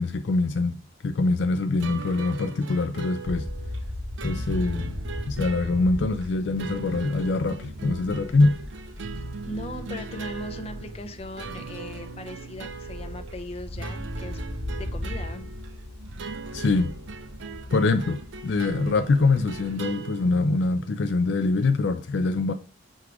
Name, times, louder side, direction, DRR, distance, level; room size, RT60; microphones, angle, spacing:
voice 1, 0.0-3.5 4.2-5.0 5.3-8.5 16.5-17.0 17.7-22.5, left 3 dB, 65° left, 0.4 m, -24 dB
sound 1, 1.8-21.0, right 4 dB, 75° right, 0.6 m, -39 dB
sound 2, 3.2-20.1, left 1 dB, 60° right, 1.7 m, -38 dB
voice 2, 9.1-14.4 14.8-15.5, left 1 dB, 35° left, 0.7 m, -38 dB
6.4 x 3.5 x 4.7 m
head